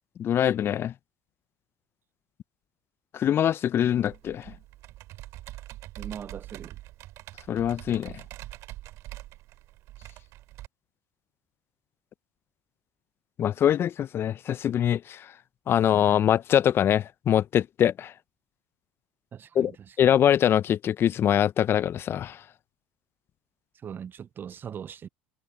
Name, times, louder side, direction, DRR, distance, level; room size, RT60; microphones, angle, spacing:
voice 1, 0.2-0.9 3.1-4.5 7.5-8.1 13.4-15.3 15.7-18.1 19.5-19.7 20.0-22.4, left 10 dB, 40° left, 0.8 m, -23 dB
Computer keyboard, 3.9-10.7, right 16 dB, 55° right, 3.2 m, -44 dB
voice 2, 6.0-6.8 19.3-20.1 23.8-25.1, right 8 dB, 35° right, 0.7 m, -40 dB
hypercardioid pair, 70°, 6 cm